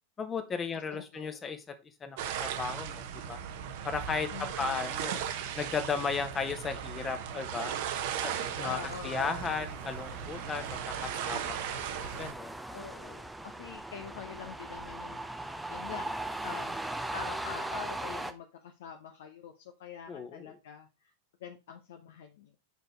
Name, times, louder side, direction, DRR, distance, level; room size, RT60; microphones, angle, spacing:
voice 1, 0.2-1.7 2.0-3.4 3.8-5.2 5.5-7.7 8.2-8.8 9.0-11.8 12.2-12.5 20.1-20.5, left 5 dB, 20° left, 9 dB, 1.2 m, -35 dB
voice 2, 0.9-1.4 4.3-5.0 8.6-9.4 12.7-16.1 16.4-16.8 17.1-21.1 21.4-22.6, left 7 dB, 55° left, 5 dB, 0.9 m, -45 dB
sound 1, 2.2-12.3, right 9 dB, 50° right, 1.0 m, -37 dB
sound 2, 8.1-18.3, right 1 dB, 5° right, 0.7 m, -40 dB
6.3 x 5.3 x 4.5 m, 0.26 s
figure-of-eight pair, 90°, 0 cm